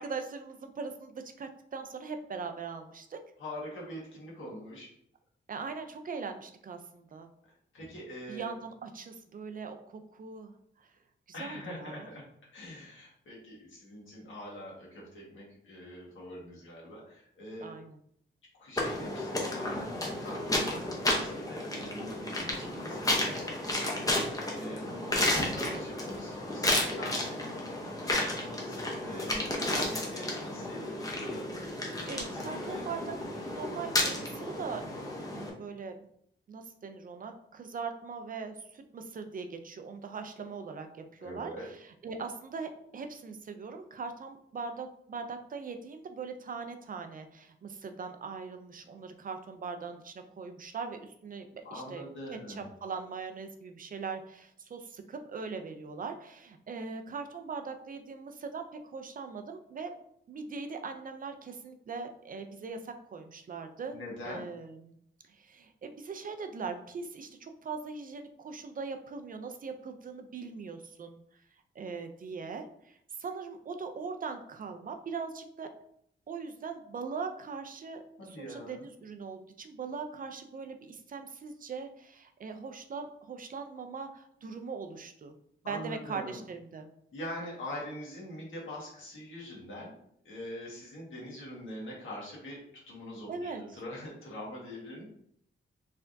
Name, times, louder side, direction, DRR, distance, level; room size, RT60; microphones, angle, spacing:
voice 1, 0.0-3.2 5.5-7.3 8.3-10.5 10.8-10.9 11.4-12.1 17.6-18.0 32.0-34.8 35.2-36.0 36.5-52.0 52.3-59.9 60.3-64.0 64.3-65.0 65.2-71.2 71.8-75.7 76.3-85.3 85.6-86.9 93.3-93.6, right 5 dB, 45° right, 6 dB, 0.4 m, -41 dB
voice 2, 3.4-4.9 7.7-8.5 11.3-12.2 12.5-17.7 18.6-24.2 24.5-27.3 28.0-31.7 32.2-32.8 41.2-41.7 51.6-52.7 63.9-64.4 78.2-78.9 85.6-86.4 87.1-89.9 90.2-92.6 92.9-95.1, left 1 dB, 80° left, -4 dB, 1.7 m, -43 dB
sound 1, 18.8-35.5, left 1 dB, 15° left, 0.8 m, -32 dB
4.4 x 3.4 x 2.6 m, 0.69 s
wide cardioid pair, 165°, 20 cm